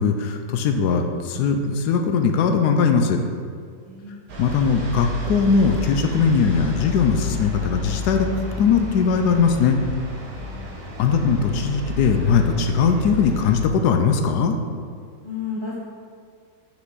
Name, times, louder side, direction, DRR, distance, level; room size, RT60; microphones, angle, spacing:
voice 1, 0.0-3.2 4.4-8.3 8.6-9.8 11.0-14.6, left 5 dB, 75° left, 5 dB, 1.1 m, -20 dB
voice 2, 3.8-4.1 10.4-10.8 15.2-15.8, left 5 dB, 45° left, -6 dB, 0.3 m, -32 dB
sound 1, 4.3-13.6, left 1 dB, 55° right, 1.5 m, -32 dB
6.5 x 5.6 x 4.0 m, 2.1 s
omnidirectional pair, 2.0 m